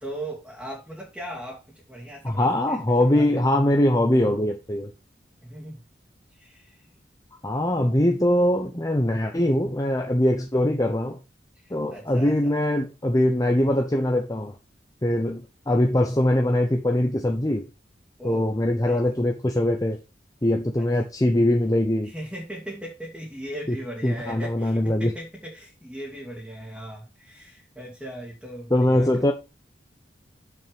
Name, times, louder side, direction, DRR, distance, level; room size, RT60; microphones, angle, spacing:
voice 1, 0.0-3.5 5.4-5.8 6.3-6.9 11.6-12.5 18.2-18.5 18.8-19.0 20.8-20.9 22.0-29.1, right 1 dB, 5° right, 2.1 m, -38 dB
voice 2, 2.2-4.9 7.4-11.2 11.7-14.5 15.0-17.7 18.2-20.0 20.4-22.1 23.7-23.8 24.0-25.1 28.7-29.3, left 1 dB, 20° left, 0.8 m, -22 dB
7.1 x 6.2 x 5.2 m
head